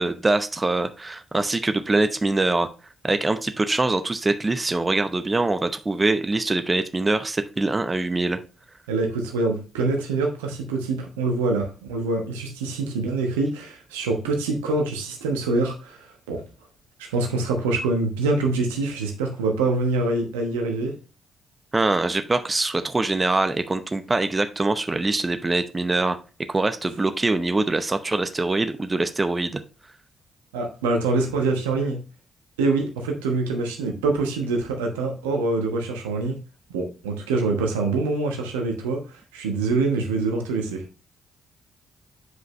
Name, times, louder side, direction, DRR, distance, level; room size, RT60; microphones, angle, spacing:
voice 1, 0.0-2.7 3.0-8.4 21.7-26.2 26.5-29.6, right 2 dB, 25° right, 10 dB, 0.7 m, -23 dB
voice 2, 8.9-16.4 17.0-20.9 30.5-32.0 32.6-36.3 36.7-40.8, right 3 dB, 80° right, 3 dB, 1.1 m, -25 dB
8.1 x 5.1 x 3.1 m, 0.33 s
hypercardioid pair, 40°, 0 cm